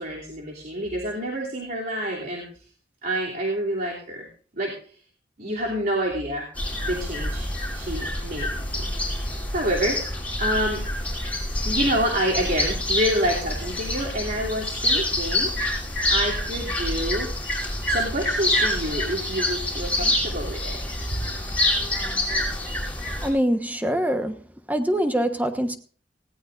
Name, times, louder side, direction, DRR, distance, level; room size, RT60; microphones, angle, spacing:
voice 1, 0.0-2.4 3.0-4.3 4.6-4.7 5.4-6.5 6.8-8.5 8.7-10.0 10.4-10.8 11.6-15.5 16.1-17.3 17.9-20.8 21.1-21.2, equal, 55° right, 3.1 m, -28 dB
sound 1, 6.6-23.3, left 1 dB, 10° left, 5.6 m, -27 dB
voice 2, 23.2-24.4 24.7-25.8, equal, 10° right, 1.2 m, -24 dB
19.0 x 17.5 x 2.6 m
head